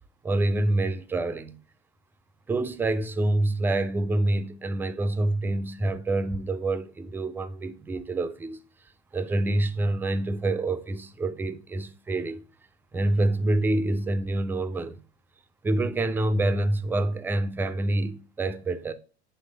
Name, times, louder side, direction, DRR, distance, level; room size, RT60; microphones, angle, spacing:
voice 1, 0.2-1.6 2.5-8.6 9.1-12.4 12.9-15.0 15.6-18.9, right 2 dB, 5° right, 0.3 m, -26 dB
7.6 x 3.2 x 4.0 m
hypercardioid pair, 85°, 35 cm